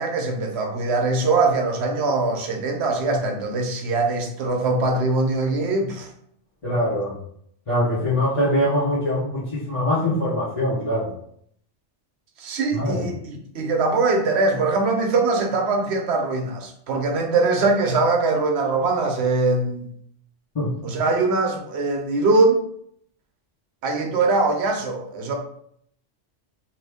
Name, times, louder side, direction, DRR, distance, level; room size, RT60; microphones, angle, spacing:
voice 1, 0.0-6.1 12.4-19.8 20.8-22.6 23.8-25.4, right 3 dB, 70° right, 3 dB, 0.9 m, -22 dB
voice 2, 6.6-7.2 7.7-11.1 12.7-13.1 20.5-20.8, left 1 dB, 30° left, -12 dB, 1.0 m, -23 dB
3.0 x 2.6 x 3.4 m, 0.66 s
omnidirectional pair, 1.2 m